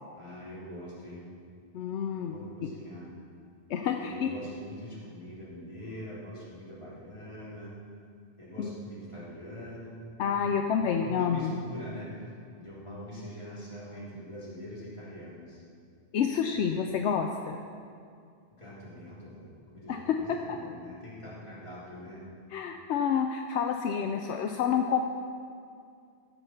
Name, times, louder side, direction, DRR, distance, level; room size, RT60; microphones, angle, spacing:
voice 1, 0.2-1.2 2.2-3.1 3.8-7.8 8.4-10.1 10.4-10.6 11.0-12.1 12.6-15.6 18.5-22.2, equal, 25° left, -9 dB, 3.5 m, -44 dB
voice 2, 1.7-2.3 3.7-4.3 8.6-8.7 10.2-11.5 16.1-17.6 19.9-20.2 20.5-20.6 22.5-25.0, left 7 dB, 75° left, 4 dB, 0.9 m, -28 dB
16.0 x 7.0 x 5.7 m, 2.3 s
omnidirectional pair, 1.2 m